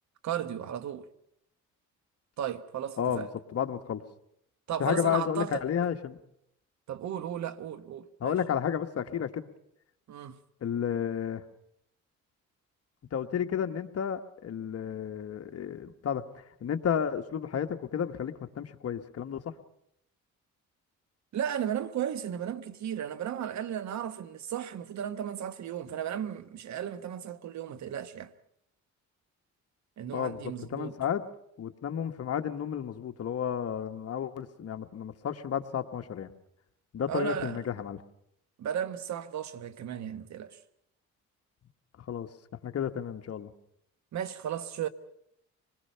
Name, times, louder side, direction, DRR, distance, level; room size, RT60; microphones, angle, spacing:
voice 1, 0.2-1.1 2.4-3.3 4.7-5.6 6.9-8.4 10.1-10.4 21.3-28.3 30.0-31.0 37.1-37.6 38.6-40.6 44.1-44.9, right 9 dB, 65° right, 1.2 m, -35 dB
voice 2, 3.0-4.0 4.8-6.2 8.2-9.5 10.6-11.4 13.1-19.4 30.1-30.4 30.7-31.2 31.6-36.3 36.9-38.0 42.0-42.3 42.6-43.5, left 8 dB, 55° left, 1.3 m, -32 dB
25.5 x 20.5 x 5.7 m
cardioid pair, 90°, 30 cm